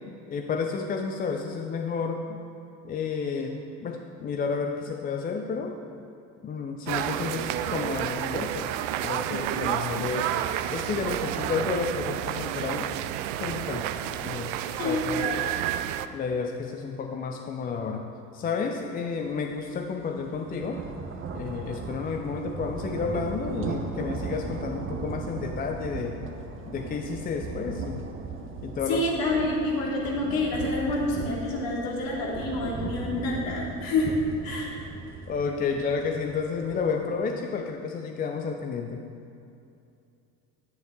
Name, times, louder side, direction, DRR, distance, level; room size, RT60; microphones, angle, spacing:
voice 1, 0.1-2.4 2.8-5.8 6.4-8.7 9.0-10.3 10.7-12.9 13.4-13.9 14.2-14.5 14.8-15.2 16.1-18.1 18.3-20.8 21.3-26.2 26.6-28.0 28.6-29.0 35.3-39.0, left 5 dB, 20° left, 4 dB, 0.5 m, -31 dB
sound 1, 6.9-16.1, right 12 dB, 50° right, 0.5 m, -30 dB
voice 2, 14.8-15.3 28.9-34.1 34.4-34.7, left 2 dB, 45° left, -3 dB, 2.7 m, -28 dB
sound 2, 19.3-19.4 19.8-37.1, right 4 dB, 25° right, 1.0 m, -37 dB
11.0 x 9.5 x 3.7 m, 2.6 s
figure-of-eight pair, 65°, 48 cm